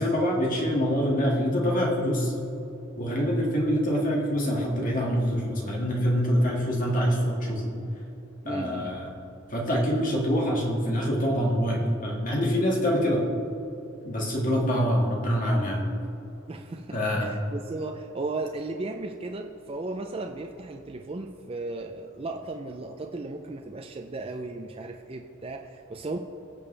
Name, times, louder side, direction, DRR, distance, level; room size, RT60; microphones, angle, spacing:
voice 1, 0.0-2.3 3.0-7.7 8.5-9.1 9.5-13.2 14.0-15.8 16.9-17.3, equal, 40° left, -2 dB, 2.1 m, -25 dB
voice 2, 8.4-8.9 16.5-26.2, right 2 dB, 30° right, 3 dB, 0.5 m, -35 dB
21.0 x 7.0 x 3.4 m, 2.8 s
head